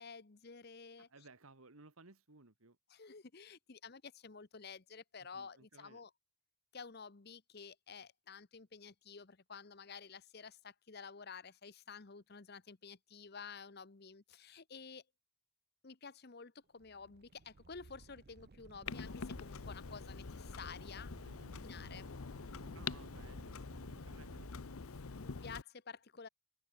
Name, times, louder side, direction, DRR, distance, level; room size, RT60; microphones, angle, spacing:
voice 1, 0.0-1.1 2.9-6.1 6.7-15.0 15.8-21.1 21.6-22.1 25.1-26.3, left 5 dB, 45° left, 0.9 m, -51 dB
voice 2, 1.0-2.8 5.3-6.0 21.2-21.6 22.7-25.3, right 3 dB, 80° right, 1.9 m, -61 dB
sound 1, 16.8-24.5, right 3 dB, 45° right, 0.6 m, -58 dB
Clock, 18.9-25.6, left 5 dB, 85° left, 0.8 m, -46 dB
head